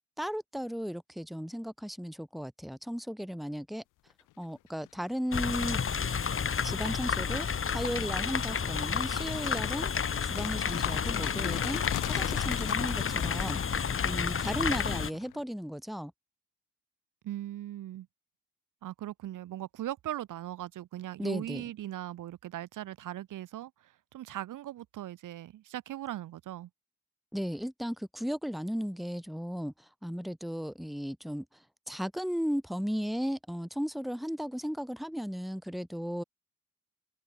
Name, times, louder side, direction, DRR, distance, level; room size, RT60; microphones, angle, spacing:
voice 1, 0.2-3.8 4.4-5.8 6.6-7.5 7.7-9.9 10.2-11.8 12.1-13.6 14.0-16.1 21.2-21.6 27.3-31.4 31.9-36.2, equal, ahead, 2.7 m, -35 dB
sound 1, 4.6-4.9 5.3-15.4, left 17 dB, 90° left, 3.3 m, -41 dB
sound 2, 5.3-15.1, left 6 dB, 45° left, 1.7 m, -31 dB
voice 2, 17.2-18.1 18.8-26.7, right 13 dB, 80° right, 3.8 m, -39 dB
supercardioid pair, 55°, 31 cm